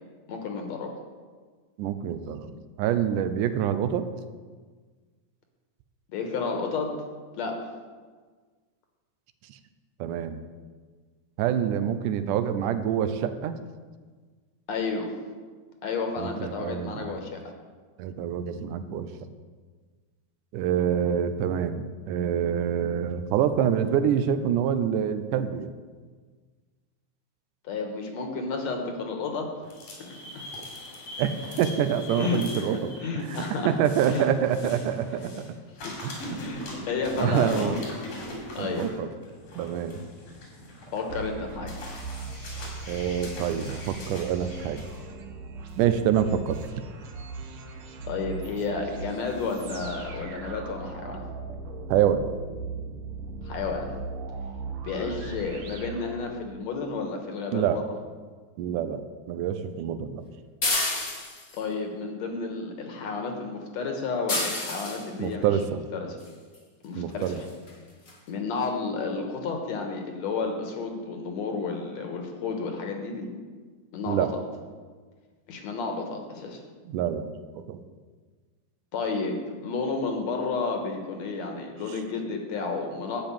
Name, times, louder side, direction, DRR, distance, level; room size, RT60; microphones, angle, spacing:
voice 1, 0.3-0.9 6.1-6.9 7.3-7.6 14.7-15.1 15.8-17.4 27.6-29.5 30.1-30.5 32.1-33.7 34.1-34.3 35.8-35.9 36.3-37.8 38.6-38.9 40.9-41.8 48.1-51.2 53.4-53.9 54.8-57.8 61.5-65.5 66.0-66.2 66.8-67.4 68.3-73.3 73.9-74.3 75.5-76.6 78.9-79.3 79.6-83.3, left 4 dB, 65° left, 3 dB, 2.3 m, -31 dB
voice 2, 1.8-4.1 9.5-9.6 10.0-10.4 11.4-13.6 16.2-17.2 18.0-19.3 20.5-25.7 31.2-35.5 36.0-36.4 37.1-37.8 38.6-39.1 39.6-40.0 42.9-44.9 45.8-46.6 51.9-52.3 57.5-57.8 58.6-60.3 65.2-65.8 67.0-67.4 74.1-74.3 76.9-77.8, right 9 dB, 85° right, 10 dB, 2.2 m, -26 dB
sound 1, 29.6-35.5 35.8-45.0, left 1 dB, 90° left, 4.5 m, -41 dB
sound 2, 41.1-56.7, right 3 dB, 65° right, 1.4 m, -39 dB
sound 3, 60.6-61.6 64.3-65.1 66.5-66.6 67.2-67.4 67.7-67.8 68.1-68.2, left 2 dB, 35° left, 0.9 m, -29 dB
11.0 x 5.3 x 8.6 m, 1.5 s
omnidirectional pair, 3.6 m